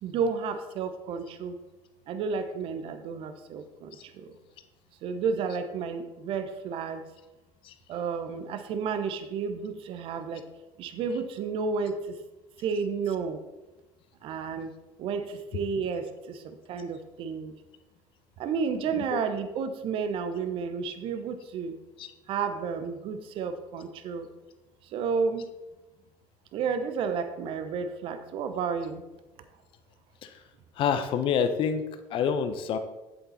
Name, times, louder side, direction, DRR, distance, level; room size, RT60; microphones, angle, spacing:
voice 1, 0.0-1.6 2.1-4.0 4.2-4.3 5.0-7.0 7.9-10.4 10.8-12.0 12.6-13.4 14.2-14.7 15.0-17.5 18.4-21.7 22.3-24.3 24.9-25.5 26.5-29.0, right 5 dB, 55° right, 9 dB, 1.0 m, -31 dB
voice 2, 30.8-31.8 32.1-32.8, left 7 dB, 50° left, 9 dB, 0.9 m, -27 dB
7.9 x 7.5 x 4.2 m, 1.0 s
hypercardioid pair, 75°, 11 cm